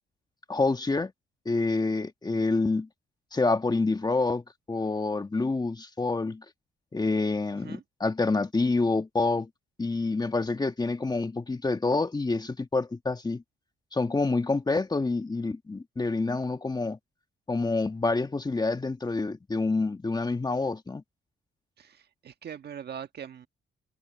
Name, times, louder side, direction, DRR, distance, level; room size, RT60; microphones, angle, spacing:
voice 1, 0.5-1.1 1.4-2.9 3.3-4.4 4.7-6.4 6.9-9.5 9.8-13.4 13.9-17.0 17.5-21.0, left 3 dB, 20° left, 1.5 m, -27 dB
voice 2, 7.5-7.8 21.8-23.5, right 8 dB, 55° right, 1.7 m, -42 dB
cardioid pair, 90°, 20 cm